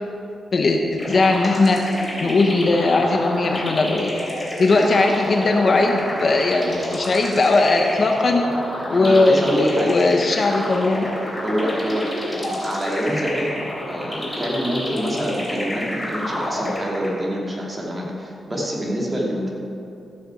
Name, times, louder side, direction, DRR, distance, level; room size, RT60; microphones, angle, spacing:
voice 1, 0.5-1.8 2.2-4.1 4.6-8.5 8.9-11.1, left 3 dB, 40° left, 3 dB, 1.0 m, -18 dB
sound 1, 1.0-17.4, left 1 dB, 10° left, 3.4 m, -29 dB
voice 2, 8.9-10.0 11.4-19.5, equal, 20° right, -3 dB, 2.5 m, -26 dB
14.5 x 6.8 x 7.0 m, 2.8 s
wide cardioid pair, 140°, 0 cm